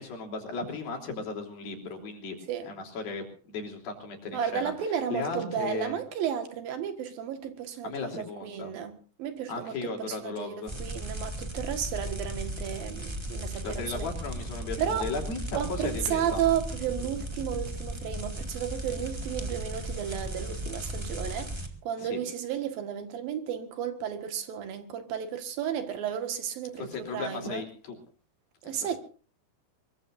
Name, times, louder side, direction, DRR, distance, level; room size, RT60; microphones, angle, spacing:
voice 1, 0.0-2.4 2.7-4.7 5.1-6.0 7.8-8.7 9.5-10.7 13.6-16.4 22.0-22.2 26.8-28.0 28.6-28.9, left 4 dB, 70° left, 5.2 m, -36 dB
voice 2, 4.3-14.1 14.8-15.1 15.5-27.7 28.6-29.0, right 9 dB, 70° right, 3.4 m, -33 dB
sound 1, 10.7-21.7, right 1 dB, 20° right, 0.7 m, -36 dB
24.0 x 22.5 x 2.6 m
omnidirectional pair, 4.4 m